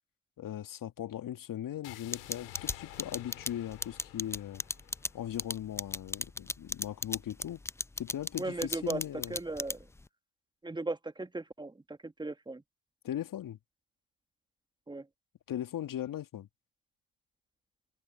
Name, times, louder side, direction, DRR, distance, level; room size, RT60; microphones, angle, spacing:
voice 1, 0.4-4.6 5.1-7.6 8.0-9.4 13.0-13.6 15.5-16.5, left 11 dB, 45° left, 2.2 m, -39 dB
sound 1, 1.8-5.9, left 17 dB, 75° left, 4.2 m, -51 dB
sound 2, 2.1-10.0, left 2 dB, 5° left, 0.5 m, -35 dB
voice 2, 8.4-9.0 9.3-9.8 10.6-12.6 14.9-15.0, right 2 dB, 10° right, 1.4 m, -37 dB
hypercardioid pair, 60°, 47 cm